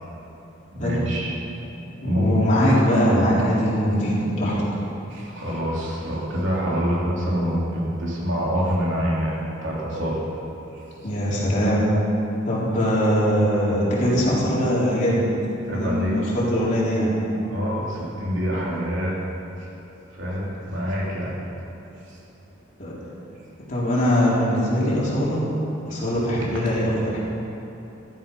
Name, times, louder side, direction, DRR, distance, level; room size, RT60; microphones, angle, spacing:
voice 1, 0.7-1.3 2.0-2.4 5.1-10.2 11.0-11.1 15.7-16.2 17.5-19.2 19.6-19.7 20.1-21.3 22.1-22.2 25.9-26.2, equal, 75° right, -4 dB, 3.3 m, -26 dB
voice 2, 1.7-4.6 11.0-11.9 12.5-15.3 15.7-17.1 22.8-23.0 23.7-25.4 25.9-27.2, equal, 40° left, -7 dB, 3.8 m, -21 dB
14.5 x 11.0 x 5.5 m, 3.0 s
head